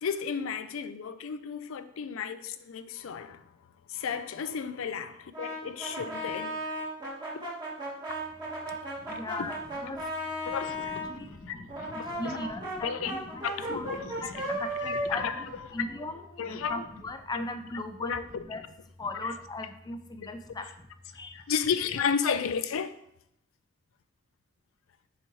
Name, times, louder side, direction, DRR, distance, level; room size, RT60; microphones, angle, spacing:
voice 1, 0.0-3.4 3.9-6.8 7.3-7.4 9.1-9.5 10.5-11.1 11.5-12.4 12.8-13.1 13.4-14.5 14.8-15.4 16.4-16.8 17.3-17.4 18.0-18.2 20.2-20.3 21.3-23.0, left 6 dB, 85° left, 0.4 m, -33 dB
Brass instrument, 5.3-11.1 11.7-16.5, equal, 20° right, 1.6 m, -36 dB
voice 2, 8.7-10.1 10.7-20.9 21.1-21.4, left 2 dB, 20° left, 0.4 m, -39 dB
7.0 x 4.9 x 3.1 m
head